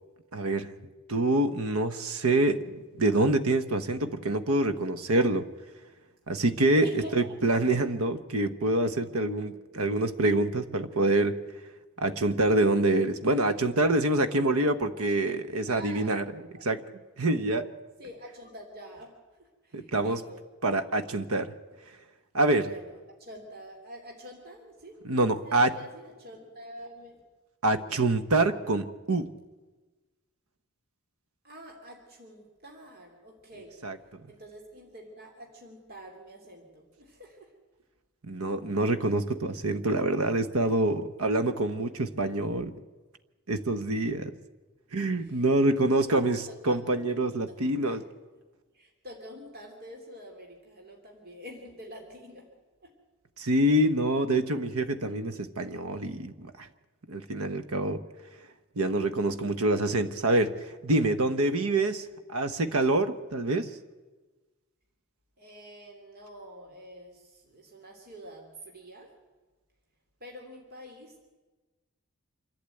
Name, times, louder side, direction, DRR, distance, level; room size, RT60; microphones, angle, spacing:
voice 1, 0.3-0.7 1.1-5.5 6.3-11.4 12.0-16.2 16.6-16.8 17.2-17.7 19.7-20.2 20.6-21.5 22.3-22.7 25.0-25.7 27.6-29.3 33.8-34.0 38.2-42.7 43.5-44.3 44.9-48.0 53.4-56.7 57.1-58.0 58.8-63.7, right 2 dB, 75° right, 10 dB, 1.1 m, -26 dB
voice 2, 6.8-7.6 15.1-16.2 18.0-19.1 19.4-20.4 22.7-24.9 25.2-27.2 31.4-33.7 34.3-37.5 45.2-45.5 46.1-46.8 47.1-47.2 47.5-47.6 47.8-48.0 48.7-52.5 52.8-52.9 53.7-53.8 61.6-61.8 65.4-69.1 70.2-71.3, equal, 45° right, 1 dB, 3.0 m, -47 dB
26.5 x 12.0 x 9.1 m, 1.3 s
head